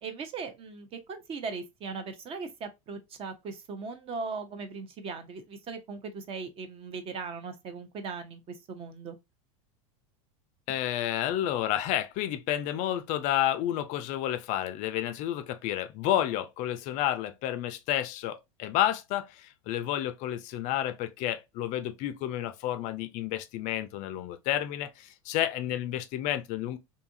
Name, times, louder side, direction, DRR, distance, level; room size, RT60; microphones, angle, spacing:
voice 1, 0.0-9.2, right 4 dB, 35° right, 0.6 m, -39 dB
voice 2, 10.7-26.8, left 12 dB, 45° left, 0.4 m, -30 dB
2.7 x 2.4 x 2.5 m
hypercardioid pair, 110°, 18 cm